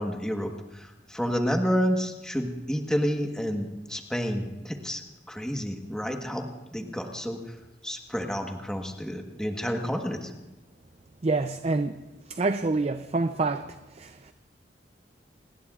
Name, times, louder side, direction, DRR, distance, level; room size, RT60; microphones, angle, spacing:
voice 1, 0.0-5.0 5.3-7.4 7.8-10.3, equal, 5° left, 3 dB, 1.3 m, -30 dB
voice 2, 11.2-12.0 12.3-13.7 14.0-14.1, right 3 dB, 35° right, 9 dB, 0.5 m, -26 dB
28.0 x 19.5 x 2.5 m, 1.0 s
head